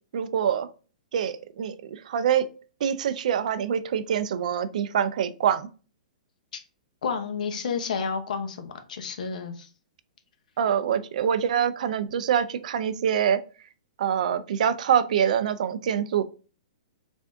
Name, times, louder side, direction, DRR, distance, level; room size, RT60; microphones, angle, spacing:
voice 1, 0.1-0.7 1.1-2.5 2.8-5.7 10.6-13.4 14.0-16.2, right 8 dB, 65° right, 0.4 m, -25 dB
voice 2, 7.0-9.7, left 5 dB, 70° left, 0.8 m, -31 dB
3.4 x 2.6 x 3.4 m
hypercardioid pair, 145°, 4 cm